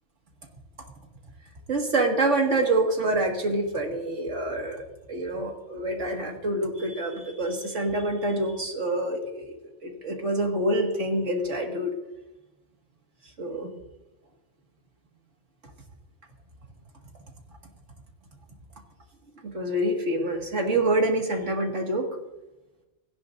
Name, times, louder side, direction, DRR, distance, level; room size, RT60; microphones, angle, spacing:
voice 1, 1.7-4.8 5.1-9.5 9.8-11.9 13.4-13.7 19.4-22.1, right 1 dB, 75° right, 2 dB, 2.3 m, -26 dB
17.5 x 15.5 x 2.6 m, 1.0 s
omnidirectional pair, 1.3 m